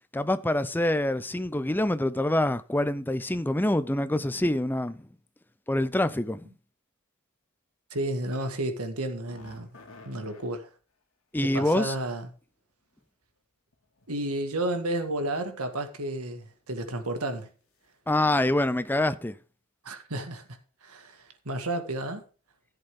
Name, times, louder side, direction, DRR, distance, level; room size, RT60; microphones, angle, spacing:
voice 1, 0.1-5.0 5.7-6.4 11.3-11.9 18.1-19.3, left 1 dB, 10° left, 0.5 m, -26 dB
voice 2, 7.9-9.7 10.1-10.7 11.4-12.3 14.1-17.5 19.8-20.4 20.8-22.2, right 1 dB, 90° right, 1.9 m, -32 dB
sound 1, 9.1-10.5 12.7-12.8 13.7-14.2 14.5-14.7 15.4-15.8 16.2-16.3 16.7-16.8, left 2 dB, 65° left, 2.4 m, -51 dB
14.5 x 8.0 x 3.7 m
head